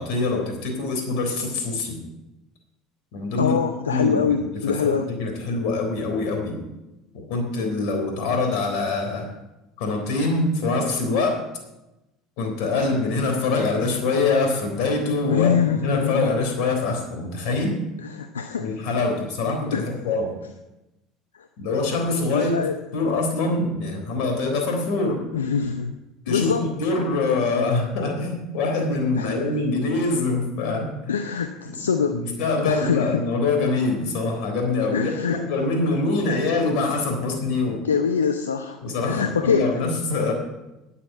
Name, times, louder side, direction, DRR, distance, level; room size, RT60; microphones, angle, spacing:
voice 1, 0.0-2.0 3.1-3.5 3.9-4.4 4.7-6.6 7.1-9.3 9.8-11.4 12.4-17.8 18.6-20.3 21.6-22.6 22.9-25.2 26.3-31.1 31.6-31.8 32.1-37.9 38.8-40.3, left 3 dB, 65° left, 3 dB, 3.6 m, -24 dB
voice 2, 3.4-5.1 15.3-16.3 18.0-18.7 19.7-19.9 21.4-21.5 22.3-22.8 25.3-25.9 26.3-26.7 29.2-29.5 31.1-32.2 32.6-33.2 34.9-35.4 37.8-38.8 39.0-39.8, left 6 dB, 90° left, 7 dB, 0.6 m, -24 dB
10.0 x 8.3 x 7.9 m, 0.98 s
hypercardioid pair, 70°, 0 cm